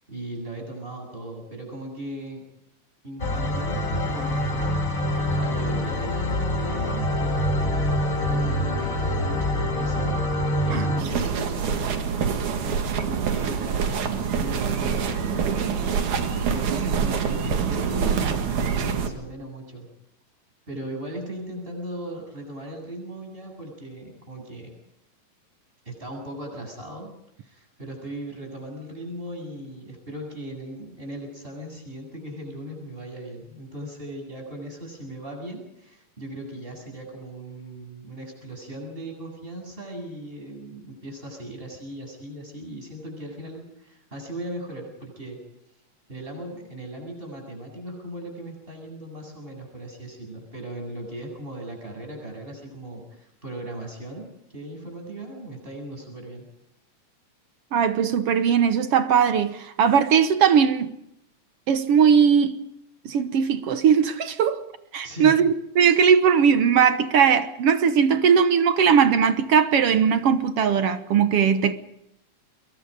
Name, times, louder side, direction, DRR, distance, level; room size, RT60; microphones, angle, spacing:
voice 1, 0.1-2.4 3.0-4.6 5.3-7.6 8.4-10.2 10.6-19.9 20.7-24.7 25.8-27.1 27.4-45.4 46.1-56.5 65.0-65.4, right 1 dB, 15° right, 8.3 m, -38 dB
sound 1, 3.2-11.0, left 1 dB, 30° left, 2.3 m, -25 dB
sound 2, 11.0-19.1, right 6 dB, 85° right, 3.4 m, -25 dB
voice 2, 57.7-60.9 61.7-62.6 63.1-64.6 64.9-71.7, right 7 dB, 60° right, 1.8 m, -19 dB
25.0 x 22.5 x 5.2 m
omnidirectional pair, 3.4 m